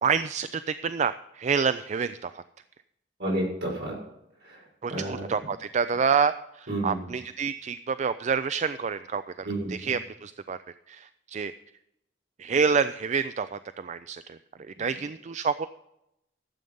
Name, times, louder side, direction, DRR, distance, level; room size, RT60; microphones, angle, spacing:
voice 1, 0.0-2.4 4.8-10.6 10.9-11.5 12.4-14.4 14.8-15.7, right 6 dB, 40° right, 13 dB, 0.4 m, -28 dB
voice 2, 3.2-4.0 4.4-4.6 4.9-5.3 6.7-7.1 9.4-9.9 14.8-14.9, right 1 dB, 60° right, -2 dB, 5.5 m, -31 dB
13.0 x 7.9 x 5.4 m, 0.82 s
head